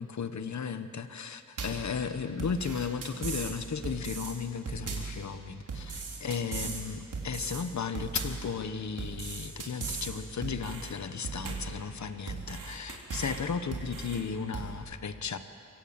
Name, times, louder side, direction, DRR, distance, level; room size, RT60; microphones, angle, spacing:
voice 1, 0.0-15.4, left 6 dB, 65° left, 10 dB, 1.2 m, -35 dB
sound 1, 1.6-1.9 2.4-3.5 3.8-4.3 4.7-5.2 5.7-6.8 7.1-7.6 7.9-8.5 9.0-10.1 10.4-10.9 11.2-11.8 12.3-13.4 13.7-14.2 14.5-14.7, right 4 dB, 85° right, 4.2 m, -37 dB
24.5 x 22.0 x 8.9 m, 2.6 s
wide cardioid pair, 140°, 31 cm